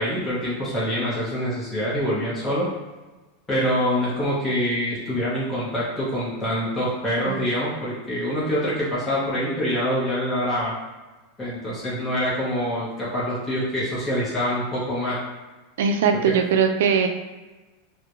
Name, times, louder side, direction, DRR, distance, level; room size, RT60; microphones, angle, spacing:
voice 1, 0.0-2.7 3.5-10.7 11.4-15.2 16.2-16.3, equal, 15° left, -8 dB, 0.8 m, -25 dB
voice 2, 15.8-17.1, right 6 dB, 80° right, 6 dB, 0.3 m, -20 dB
2.3 x 2.1 x 2.9 m, 1.2 s
supercardioid pair, 135°, 0 cm